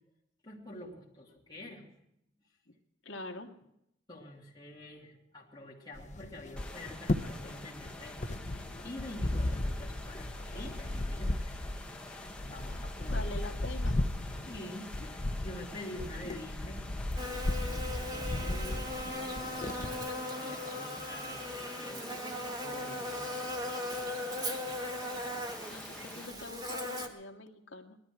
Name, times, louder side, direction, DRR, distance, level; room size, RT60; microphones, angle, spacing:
voice 1, 0.4-1.9 4.1-13.2 14.4-16.8 17.5-24.1 24.6-24.9, left 1 dB, 20° left, -4 dB, 3.2 m, -48 dB
voice 2, 3.0-3.5 13.1-14.0 25.7-28.0, left 2 dB, 70° left, 2 dB, 1.6 m, -44 dB
sound 1, 5.9-20.1, left 1 dB, 40° left, 0.8 m, -36 dB
sound 2, 6.6-26.3, left 2 dB, 5° left, 1.1 m, -48 dB
Buzz, 17.2-27.1, left 1 dB, 20° right, 1.4 m, -38 dB
19.0 x 13.0 x 4.7 m, 0.79 s
head